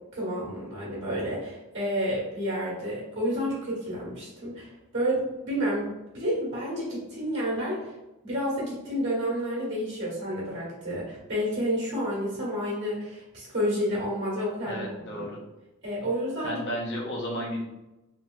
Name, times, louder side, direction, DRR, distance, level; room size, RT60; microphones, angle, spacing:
voice 1, 0.1-7.9 8.2-14.8 15.1-15.3 15.8-16.6, equal, 55° right, -6 dB, 1.3 m, -30 dB
voice 2, 14.6-15.4 16.4-17.6, equal, 55° left, -4 dB, 0.8 m, -33 dB
3.1 x 2.7 x 2.3 m, 0.99 s
head